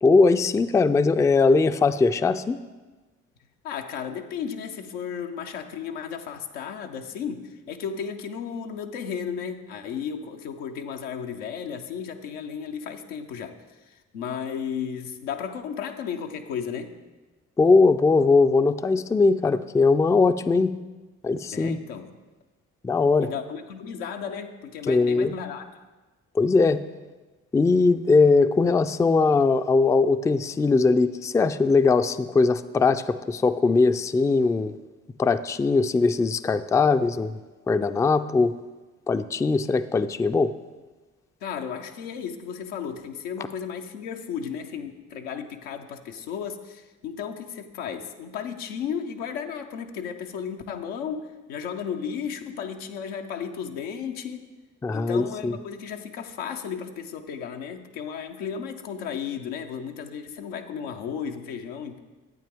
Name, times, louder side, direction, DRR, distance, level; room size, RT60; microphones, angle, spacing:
voice 1, 0.0-2.6 17.6-20.7 21.2-21.8 22.8-23.3 24.9-25.3 26.3-26.8 27.5-34.7 35.2-37.4 37.7-38.5 39.1-40.5 54.8-55.6, left 4 dB, 10° left, 11 dB, 0.3 m, -20 dB
voice 2, 3.6-16.9 21.5-22.1 23.2-25.8 41.4-54.4 54.9-62.0, left 7 dB, 85° left, 5 dB, 0.7 m, -34 dB
10.5 x 8.6 x 3.5 m, 1.2 s
hypercardioid pair, 45°, 38 cm